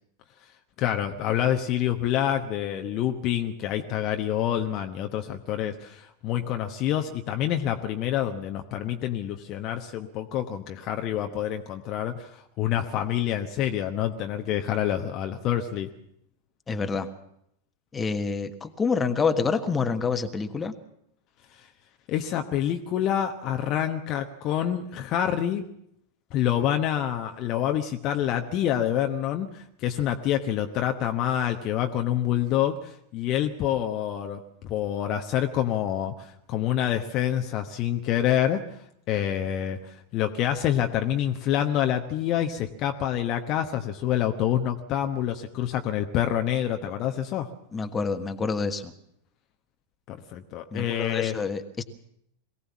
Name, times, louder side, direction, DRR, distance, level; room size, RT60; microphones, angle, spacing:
voice 1, 0.8-15.9 21.5-21.7 22.1-25.6 26.3-38.8 39.1-47.5 50.1-51.4, left 11 dB, 40° left, 5 dB, 1.1 m, -27 dB
voice 2, 16.7-17.1 17.9-20.8 47.7-48.9 50.7-51.8, left 5 dB, 15° left, 8 dB, 1.4 m, -27 dB
22.5 x 17.0 x 7.2 m, 0.74 s
figure-of-eight pair, 90°, 0 cm